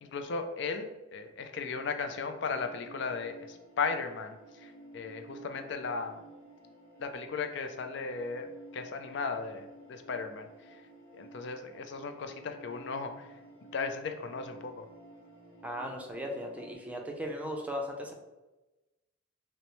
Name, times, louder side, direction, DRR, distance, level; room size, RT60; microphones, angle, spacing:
voice 1, 0.0-6.2 7.0-8.5 8.7-10.8 11.2-13.3 13.7-14.9, left 4 dB, 60° left, 7 dB, 0.4 m, -36 dB
sound 1, 1.6-16.7, right 1 dB, 25° left, 1.2 m, -53 dB
voice 2, 15.6-18.1, equal, 5° right, 1 dB, 0.5 m, -37 dB
6.1 x 2.1 x 3.0 m, 1.1 s
head